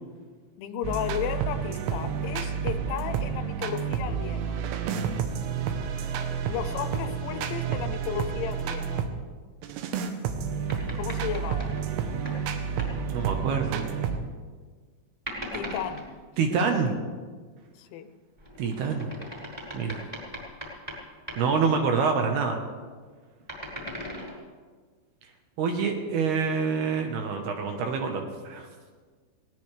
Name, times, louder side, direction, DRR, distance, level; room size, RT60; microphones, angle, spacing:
voice 1, 0.6-4.6 6.5-9.1 10.9-11.9 15.5-16.1 16.5-16.8 17.8-18.1 23.9-24.2, left 9 dB, 80° left, 9 dB, 3.1 m, -34 dB
sound 1, 0.8-9.1 9.6-14.2, right 7 dB, 90° right, 3.6 m, -30 dB
sound 2, 10.7-12.4 12.8-13.0 15.3-16.1 18.4-21.0 21.3-21.4 23.4-24.3, equal, 5° right, 4.2 m, -38 dB
voice 2, 13.1-13.9 16.4-16.9 18.6-19.1 19.7-20.0 21.4-22.6 25.6-28.7, right 5 dB, 70° right, 4 dB, 2.8 m, -26 dB
19.5 x 18.5 x 3.3 m, 1.5 s
omnidirectional pair, 5.5 m